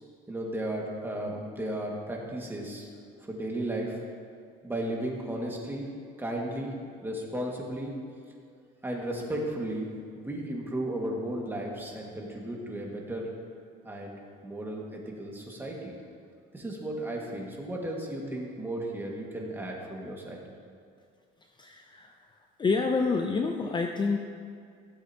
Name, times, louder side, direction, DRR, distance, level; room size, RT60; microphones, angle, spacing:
voice 1, 0.3-2.9 3.2-4.0 4.6-5.9 6.2-6.7 7.0-7.9 8.8-9.9 10.2-13.3 13.8-14.1 14.4-16.0 16.5-20.4, right 1 dB, 10° right, -2 dB, 1.8 m, -34 dB
voice 2, 21.6-22.1 22.6-24.2, left 4 dB, 25° left, 4 dB, 0.6 m, -28 dB
16.0 x 7.9 x 2.9 m, 2.3 s
cardioid pair, 115°, 20 cm